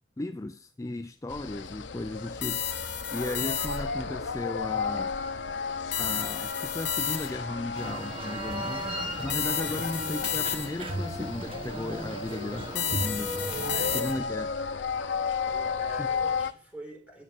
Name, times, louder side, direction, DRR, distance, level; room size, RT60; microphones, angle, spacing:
voice 1, 0.2-2.6 3.1-5.2 6.0-8.9 9.2-13.3 13.9-14.5 16.0-16.1, left 2 dB, 20° left, 0.4 m, -35 dB
sound 1, 1.3-16.5, left 5 dB, 85° left, 0.7 m, -34 dB
sound 2, 2.4-4.0 5.9-7.6 9.3-11.0 12.7-14.4, left 8 dB, 65° left, 1.5 m, -32 dB
sound 3, 7.7-14.0, right 1 dB, 30° right, 1.4 m, -36 dB
voice 2, 8.6-9.0 9.6-9.9 13.7-14.1 15.4-17.2, right 1 dB, 10° right, 4.0 m, -45 dB
12.0 x 6.5 x 7.1 m
head